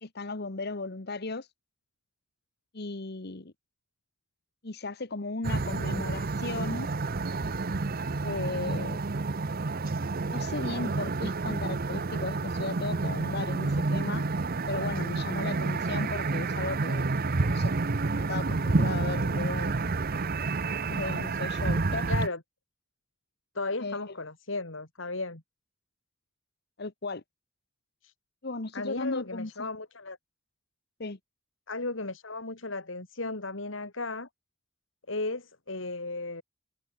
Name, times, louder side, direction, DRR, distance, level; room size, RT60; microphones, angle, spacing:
voice 1, 0.0-1.5 2.7-3.5 4.6-6.9 8.2-9.0 10.3-14.2 14.7-17.1 17.5-17.7 18.1-20.0 20.9-22.1 23.8-23.9 26.8-27.2 28.4-29.7 31.0-31.2, left 3 dB, 55° left, 1.3 m, -36 dB
sound 1, 5.4-22.3, right 3 dB, 50° right, 0.8 m, -29 dB
voice 2, 22.1-22.4 23.5-25.4 28.0-28.1 28.7-30.2 31.7-34.3 35.1-36.4, left 3 dB, 75° left, 3.1 m, -35 dB
head